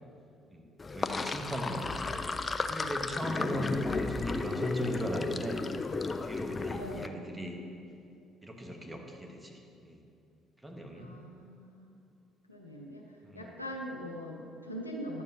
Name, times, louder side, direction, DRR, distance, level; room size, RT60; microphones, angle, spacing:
voice 1, 0.5-2.2 2.7-5.6 6.1-7.6 8.4-10.0 10.6-11.1 13.2-13.5, equal, 10° right, 2 dB, 1.0 m, -38 dB
Sink (filling or washing), 0.8-7.1, left 3 dB, 30° left, 0.3 m, -34 dB
voice 2, 10.9-11.9 12.5-15.2, equal, 90° left, 0 dB, 0.5 m, -43 dB
11.0 x 7.0 x 2.6 m, 2.5 s
figure-of-eight pair, 50°, 0 cm